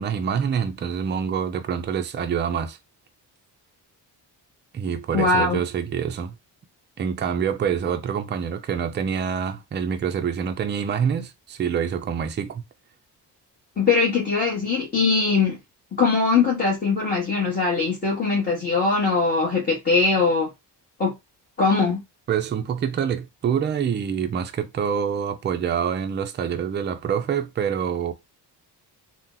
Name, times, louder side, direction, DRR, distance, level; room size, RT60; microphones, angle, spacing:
voice 1, 0.0-2.8 4.7-6.4 7.0-12.6 22.3-28.1, right 7 dB, 30° right, 0.4 m, -26 dB
voice 2, 5.1-5.6 13.8-15.6 16.0-20.5 21.0-21.1 21.6-22.0, left 4 dB, 25° left, 1.0 m, -21 dB
2.8 x 2.1 x 3.6 m
cardioid pair, 165°, 41 cm